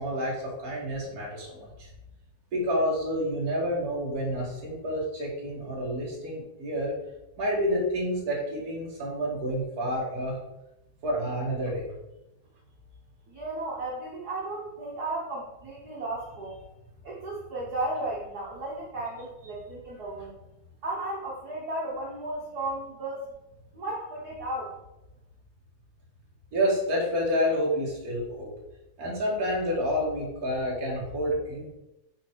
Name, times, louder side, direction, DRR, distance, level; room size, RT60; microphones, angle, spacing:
voice 1, 0.0-1.9 2.5-6.9 7.4-10.4 11.0-11.8 26.5-28.5 29.0-31.7, equal, 40° right, -3 dB, 1.6 m, -29 dB
voice 2, 13.3-16.6 17.0-20.4 20.8-23.2 23.7-24.7, right 2 dB, 75° right, -4 dB, 0.8 m, -34 dB
5.8 x 4.4 x 4.5 m, 0.93 s
omnidirectional pair, 3.4 m